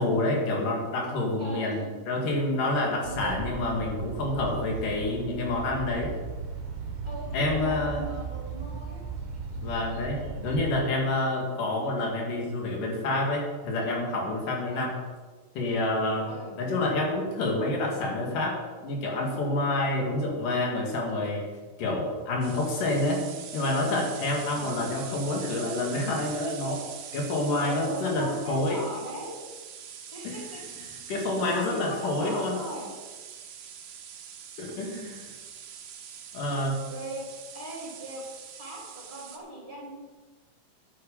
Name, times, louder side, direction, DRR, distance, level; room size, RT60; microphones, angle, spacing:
voice 1, 0.0-6.1 7.3-8.0 9.6-10.2 10.4-14.9 15.6-18.5 18.8-21.4 21.8-23.2 23.5-26.8 27.1-28.8 30.2-30.3 31.1-32.6 34.6-35.3 36.3-36.8, left 2 dB, 90° left, 0 dB, 3.7 m, -28 dB
voice 2, 1.4-1.9 3.0-3.5 7.0-9.0 10.2-10.5 14.7-14.9 16.2-16.6 24.5-24.7 27.6-29.4 30.1-30.9 31.5-32.9 34.8-35.2 36.9-37.3 37.5-38.2 38.6-39.9, right 1 dB, 20° right, -4 dB, 3.7 m, -40 dB
sound 1, 3.0-10.7, right 4 dB, 45° right, 2.1 m, -37 dB
sound 2, 22.4-39.4, right 8 dB, 65° right, 1.4 m, -44 dB
10.5 x 8.9 x 5.5 m, 1.3 s
omnidirectional pair, 3.6 m